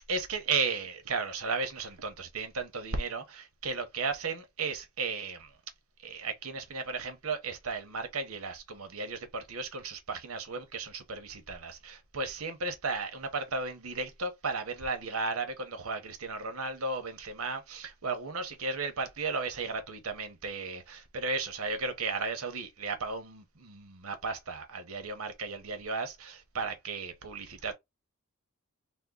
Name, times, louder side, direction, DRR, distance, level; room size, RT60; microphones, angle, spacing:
voice 1, 0.1-5.5 6.0-27.7, right 4 dB, 80° right, 1.0 m, -35 dB
3.6 x 2.2 x 3.8 m
head